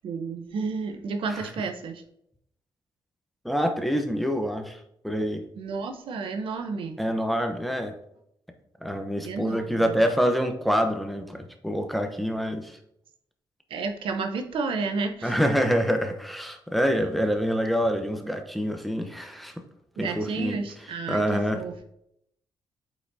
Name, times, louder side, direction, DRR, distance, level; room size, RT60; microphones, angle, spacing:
voice 1, 0.0-2.0 5.6-7.0 9.2-10.0 13.7-15.3 20.0-21.9, right 4 dB, 80° right, 6 dB, 0.9 m, -31 dB
voice 2, 3.4-5.5 7.0-8.0 8.8-12.8 15.2-19.5 20.0-20.6 21.1-21.6, equal, ahead, 5 dB, 0.9 m, -26 dB
8.2 x 5.1 x 2.8 m, 0.73 s
cardioid pair, 100°, 9 cm